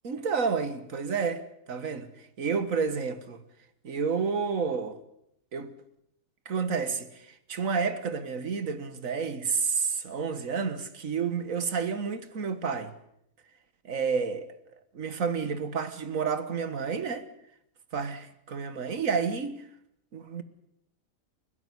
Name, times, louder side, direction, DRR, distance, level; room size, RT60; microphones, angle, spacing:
voice 1, 0.0-2.1 2.4-3.4 3.8-5.0 5.5-5.7 6.5-12.9 13.8-14.5 14.9-17.2 17.9-19.6 20.1-20.4, right 5 dB, 80° right, 1.9 m, -30 dB
29.5 x 12.0 x 9.5 m
omnidirectional pair, 1.4 m